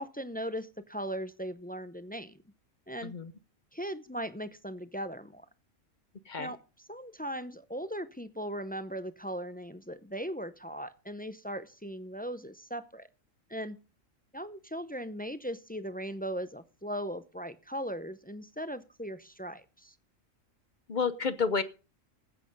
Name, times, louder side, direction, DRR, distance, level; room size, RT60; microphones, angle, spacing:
voice 1, 0.0-2.4 2.9-3.1 3.7-5.5 6.4-13.1 13.5-13.8 14.3-19.9, equal, 15° left, 13 dB, 0.3 m, -38 dB
voice 2, 20.9-21.6, left 5 dB, 45° left, 14 dB, 0.7 m, -30 dB
13.5 x 8.7 x 5.3 m, 0.34 s
omnidirectional pair, 1.4 m